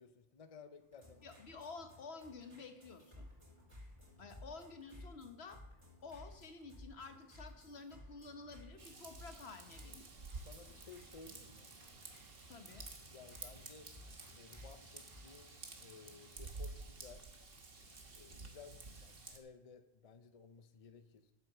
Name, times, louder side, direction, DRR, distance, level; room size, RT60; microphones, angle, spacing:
voice 1, 0.0-1.3 10.4-11.7 13.1-13.9 14.3-17.3 18.1-21.3, left 5 dB, 40° left, 9 dB, 0.7 m, -57 dB
sound 1, 0.8-15.5, left 1 dB, 25° right, 4.6 m, -58 dB
voice 2, 1.2-3.3 4.2-5.6 6.0-10.1 12.5-12.8, left 4 dB, 75° left, 6 dB, 1.4 m, -51 dB
Raindrop / Vehicle horn car horn honking / Trickle dribble, 8.8-19.4, right 3 dB, 60° right, 1.5 m, -52 dB
9.4 x 8.0 x 6.5 m, 0.85 s
omnidirectional pair, 1.1 m